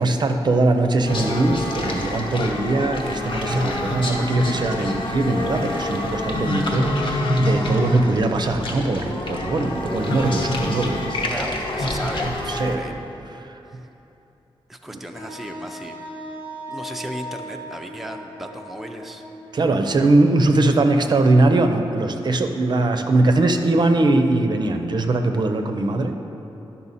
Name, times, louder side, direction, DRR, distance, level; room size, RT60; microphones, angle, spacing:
voice 1, 0.0-11.2 12.5-13.0 13.4-13.5 19.5-26.1, right 2 dB, 50° right, 6 dB, 0.5 m, -21 dB
sound 1, 1.1-12.8, left 1 dB, 65° left, 1.0 m, -26 dB
sound 2, 3.4-9.2, left 3 dB, 40° left, 0.7 m, -41 dB
voice 2, 11.3-12.9 13.7-13.8 14.7-16.0 16.7-19.2, right 1 dB, ahead, 3 dB, 0.4 m, -35 dB
Wind instrument woodwind instrument, 15.1-20.9, equal, 85° left, 1.5 m, -38 dB
10.5 x 5.6 x 4.1 m, 3.0 s
wide cardioid pair, 115°, 10 cm